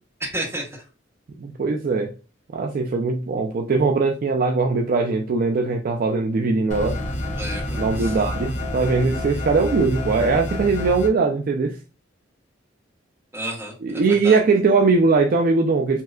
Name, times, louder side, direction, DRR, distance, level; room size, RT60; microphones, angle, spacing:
voice 1, 0.2-0.7 7.3-8.1 13.3-14.4, right 1 dB, 15° right, 1.1 m, -31 dB
voice 2, 1.4-2.1 2.5-7.0 7.8-11.8 13.8-16.0, right 4 dB, 45° right, 0.3 m, -20 dB
sound 1, 6.7-11.1, left 1 dB, 40° left, 0.7 m, -28 dB
3.2 x 2.7 x 2.3 m
head